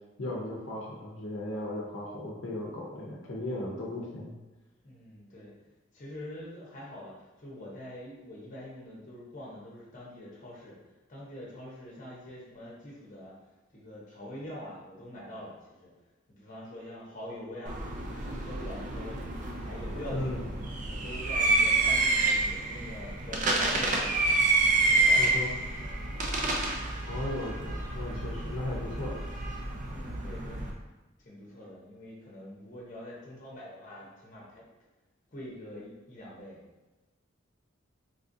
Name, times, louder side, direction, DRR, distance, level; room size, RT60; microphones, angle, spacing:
voice 1, 0.2-4.3 20.1-20.4 25.2-25.5 27.0-29.2, left 1 dB, 80° left, -3 dB, 0.6 m, -36 dB
voice 2, 4.8-5.5 5.9-10.7 11.1-13.3 13.7-15.9 16.3-17.8 18.2-19.2 19.6-20.5 20.9-24.3 24.9-25.3 26.3-26.8 29.9-30.7 31.2-34.6 35.3-36.6, left 1 dB, 40° left, -5 dB, 0.8 m, -44 dB
sound 1, 17.7-30.7, right 2 dB, 40° right, 0.4 m, -28 dB
3.4 x 2.4 x 2.6 m, 1.1 s
head